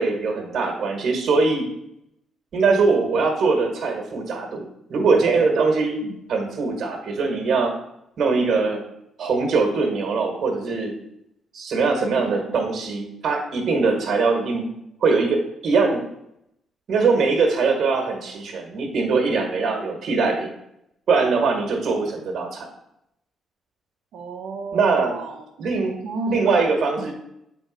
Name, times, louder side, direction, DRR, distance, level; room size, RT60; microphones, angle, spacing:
voice 1, 0.0-1.6 2.5-4.6 4.9-6.0 6.3-7.7 8.2-8.8 9.2-10.9 11.5-14.7 15.0-16.0 16.9-20.5 21.1-22.7 24.7-25.1 25.6-25.9 26.3-27.1, right 4 dB, 60° right, 3 dB, 1.5 m, -21 dB
voice 2, 12.0-12.5 24.1-25.7 26.0-26.4 27.0-27.1, right 3 dB, 75° right, -2 dB, 0.9 m, -33 dB
7.8 x 3.8 x 5.1 m, 0.81 s
cardioid pair, 90°, 0 cm